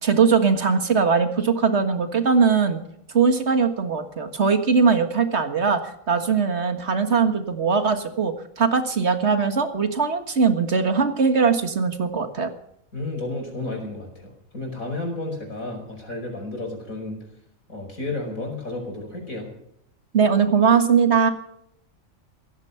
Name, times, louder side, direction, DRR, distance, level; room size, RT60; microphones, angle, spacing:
voice 1, 0.0-2.8 3.1-12.5 20.1-21.3, right 5 dB, 55° right, 7 dB, 1.9 m, -20 dB
voice 2, 12.9-17.2 17.7-19.5, left 2 dB, 85° left, 3 dB, 5.7 m, -32 dB
17.0 x 15.0 x 5.7 m, 0.74 s
omnidirectional pair, 1.4 m